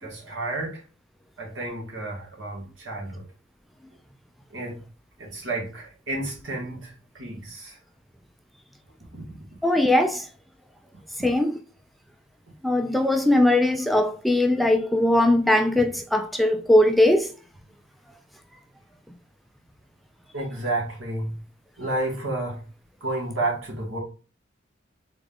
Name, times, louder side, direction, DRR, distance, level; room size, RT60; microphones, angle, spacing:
voice 1, 0.0-0.8 1.4-3.2 4.5-4.8 5.2-7.8 9.1-9.4 20.3-21.4 21.8-22.6 23.0-24.0, right 2 dB, 85° right, 2.0 m, -31 dB
voice 2, 9.6-10.3 11.2-11.6 12.6-17.3, left 1 dB, ahead, 0.4 m, -20 dB
3.9 x 3.6 x 3.6 m
head